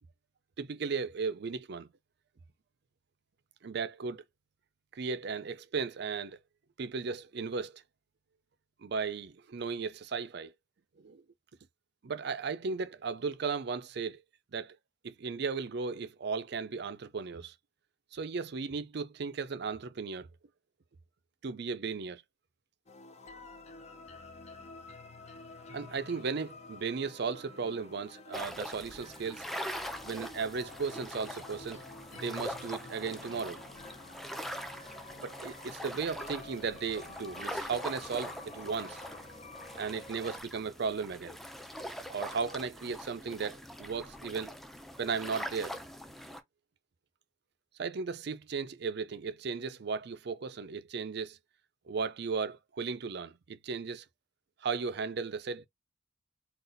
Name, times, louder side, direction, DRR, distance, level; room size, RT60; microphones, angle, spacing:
voice 1, 0.6-1.9 3.6-4.2 4.9-6.4 6.8-7.8 8.8-10.5 11.0-11.2 12.0-14.2 14.5-14.8 15.0-17.5 18.1-20.3 21.4-22.2 25.7-29.5 30.0-31.8 32.1-33.6 35.1-39.0 39.8-41.4 42.1-44.5 45.0-45.8 47.8-51.4 51.9-54.1 54.6-55.7, right 5 dB, 60° right, 0.5 m, -36 dB
sound 1, 22.9-40.4, left 3 dB, 35° left, 0.7 m, -50 dB
sound 2, 28.3-46.4, equal, ahead, 0.5 m, -43 dB
4.0 x 2.4 x 3.9 m
head